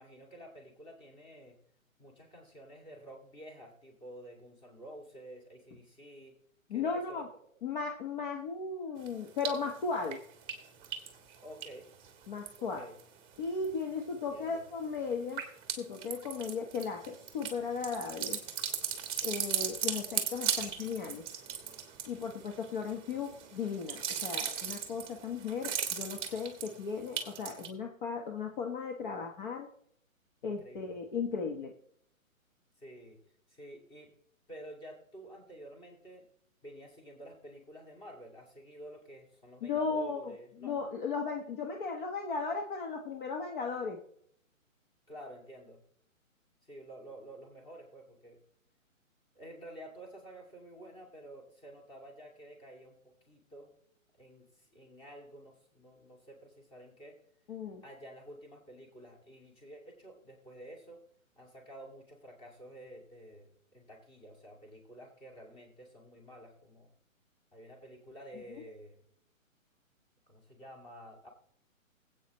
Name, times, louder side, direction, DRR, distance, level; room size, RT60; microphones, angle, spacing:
voice 1, 0.0-1.6 2.0-6.3 6.7-7.3 11.4-11.9 12.6-13.0 14.1-14.6 19.8-20.0 30.4-31.0 32.8-33.2 33.5-34.1 34.5-36.3 36.6-40.8 45.1-45.8 46.7-48.4 49.3-53.7 54.2-57.2 57.8-61.0 61.4-66.9 67.5-69.0 70.3-71.3, right 1 dB, 10° left, 1 dB, 2.3 m, -50 dB
voice 2, 6.7-7.3 7.6-10.2 12.3-12.9 13.4-15.4 15.8-18.4 19.2-21.2 22.1-29.7 30.4-31.7 39.6-40.3 40.6-44.0 57.5-57.8, left 5 dB, 35° left, 3 dB, 1.3 m, -36 dB
sound 1, 9.1-9.7 10.0-13.0 13.4-13.9 14.3-27.7, right 8 dB, 15° right, 1.3 m, -38 dB
20.5 x 8.4 x 3.1 m, 0.65 s
figure-of-eight pair, 140°, 41 cm